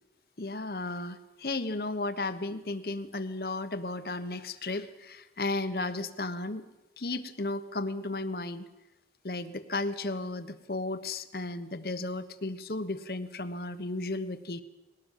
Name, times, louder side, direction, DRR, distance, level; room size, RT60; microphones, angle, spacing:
voice 1, 0.4-6.6 7.0-8.6 9.2-14.6, left 2 dB, 55° left, 11 dB, 1.2 m, -34 dB
21.0 x 17.5 x 7.4 m, 1.0 s
head